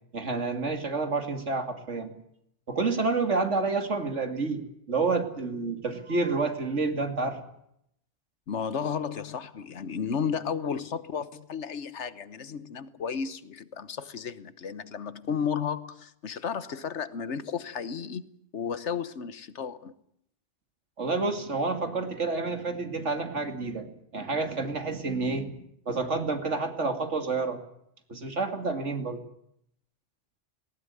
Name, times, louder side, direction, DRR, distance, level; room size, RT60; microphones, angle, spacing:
voice 1, 0.1-2.1 2.7-7.4 21.0-27.6 28.1-29.2, right 3 dB, 80° right, 7 dB, 2.8 m, -29 dB
voice 2, 8.5-18.3 18.5-19.9, left 7 dB, 75° left, 15 dB, 1.4 m, -33 dB
19.0 x 18.5 x 9.7 m, 0.74 s
omnidirectional pair, 1.2 m